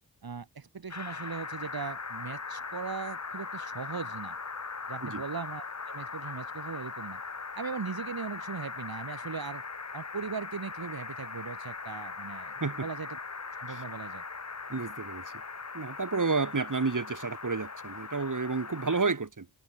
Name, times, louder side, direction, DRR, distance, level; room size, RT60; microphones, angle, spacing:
voice 1, 0.2-4.4 4.9-7.2 7.5-9.6 9.9-13.2 13.6-14.2, right 5 dB, 80° right, 4.4 m, -39 dB
sound 1, 0.9-19.0, left 4 dB, 45° left, 1.8 m, -40 dB
voice 2, 14.7-15.3 15.7-19.5, right 4 dB, 55° right, 6.4 m, -31 dB
cardioid pair, 55°, 36 cm